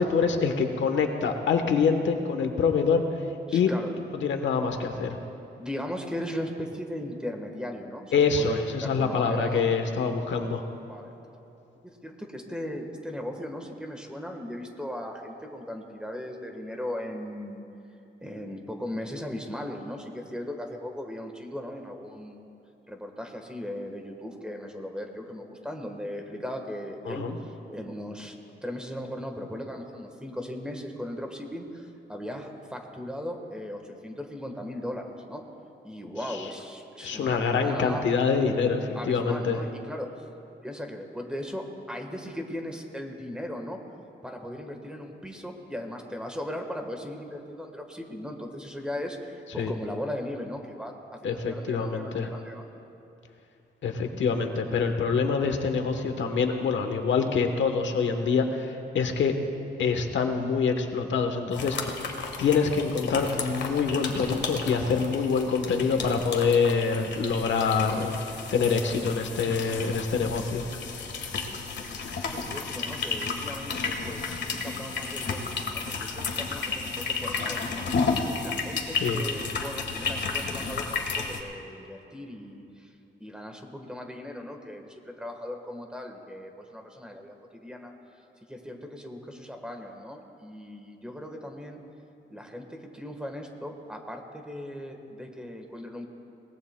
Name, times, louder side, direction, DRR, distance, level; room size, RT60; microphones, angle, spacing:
voice 1, 0.0-3.0 3.5-3.7 4.2-5.2 8.1-10.6 27.1-27.4 37.0-39.6 49.6-49.7 51.2-52.3 53.8-59.3 59.8-62.1 62.4-68.2 68.5-70.6 79.0-79.2, left 5 dB, 85° left, 6 dB, 1.1 m, -25 dB
voice 2, 3.5-3.9 5.6-9.6 10.8-11.1 11.8-17.6 18.2-22.5 22.9-28.4 28.6-35.4 35.8-38.0 38.9-40.3 40.6-43.8 44.2-52.8 67.7-68.5 72.1-82.9 83.2-87.9 88.5-91.8 92.3-96.1, left 1 dB, 5° right, 3 dB, 1.3 m, -38 dB
sound 1, 61.5-81.4, left 4 dB, 70° left, 1.5 m, -32 dB
22.5 x 19.0 x 2.2 m, 2.9 s
wide cardioid pair, 145°, 19 cm